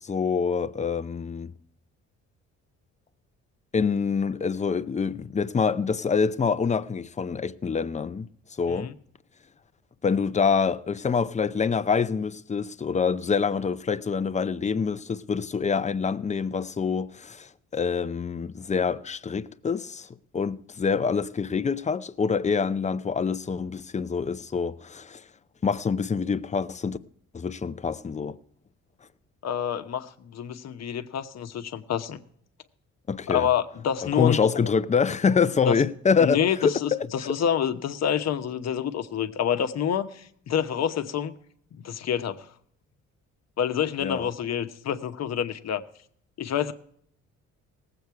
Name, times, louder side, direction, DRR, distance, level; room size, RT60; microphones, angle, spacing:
voice 1, 0.0-1.5 3.7-8.3 8.6-8.9 10.0-20.1 20.3-25.2 25.6-27.0 27.3-28.4 33.1-33.5 34.0-37.1 44.0-44.3, left 5 dB, 25° left, 0.6 m, -26 dB
voice 2, 29.4-32.2 33.3-34.4 35.7-35.8 36.2-41.3 41.7-42.5 43.6-45.8 46.4-46.7, left 8 dB, 60° left, 1.0 m, -27 dB
18.5 x 8.0 x 4.7 m
cardioid pair, 90°, 30 cm